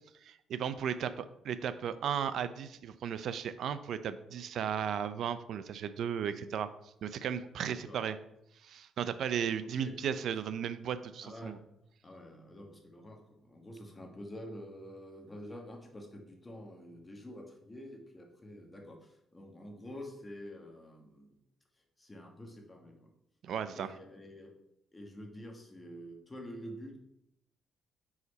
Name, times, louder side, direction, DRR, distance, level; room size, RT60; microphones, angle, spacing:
voice 1, 0.2-6.7 7.0-8.2 8.6-11.6 23.4-23.9, right 8 dB, 70° right, 13 dB, 0.4 m, -35 dB
voice 2, 7.6-8.0 9.6-10.1 11.2-11.7 12.0-21.4 22.0-23.1 23.8-24.5 24.9-27.0, equal, 20° left, 2 dB, 1.3 m, -48 dB
4.9 x 4.0 x 5.3 m, 0.80 s
cardioid pair, 90°, 0 cm